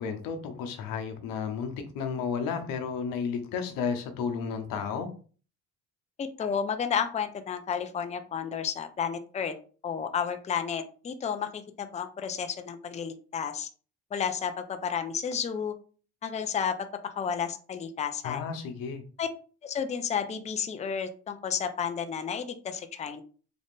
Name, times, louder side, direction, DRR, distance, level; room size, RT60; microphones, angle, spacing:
voice 1, 0.0-5.1 18.2-19.0, left 6 dB, 85° left, 6 dB, 0.8 m, -32 dB
voice 2, 6.2-9.5 9.8-13.7 14.1-15.7 16.2-16.7 17.2-18.4 19.2-19.3 19.6-23.2, left 7 dB, 20° left, 8 dB, 0.4 m, -32 dB
3.9 x 2.4 x 3.6 m, 0.39 s
cardioid pair, 105°, 33 cm